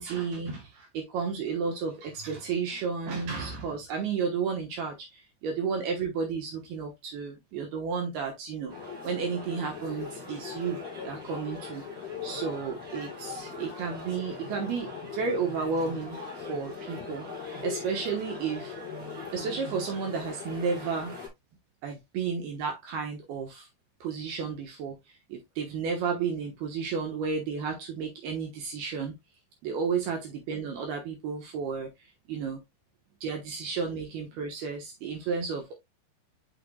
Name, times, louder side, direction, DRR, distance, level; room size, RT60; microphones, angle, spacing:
voice 1, 0.0-8.7 9.0-10.8 11.0-11.8 12.2-17.3 17.6-18.8 19.3-21.2 21.8-23.7 24.0-29.1 29.6-31.9 32.3-32.6 33.2-35.7, right 5 dB, 70° right, 2.9 m, -32 dB
sound 1, 8.7-21.3, left 4 dB, 10° right, 4.0 m, -40 dB
6.6 x 6.5 x 2.3 m
omnidirectional pair, 5.1 m